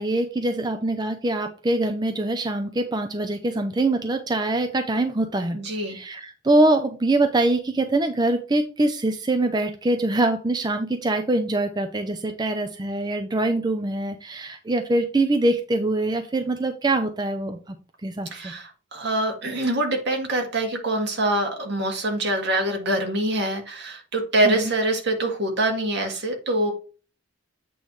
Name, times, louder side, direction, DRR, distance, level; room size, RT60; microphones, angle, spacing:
voice 1, 0.0-5.6 5.9-17.8 18.0-18.5 24.4-24.7, right 2 dB, 20° right, 7 dB, 0.5 m, -24 dB
voice 2, 5.5-6.0 18.3-26.7, right 1 dB, 65° right, 2 dB, 1.9 m, -25 dB
8.4 x 3.1 x 5.3 m, 0.36 s
head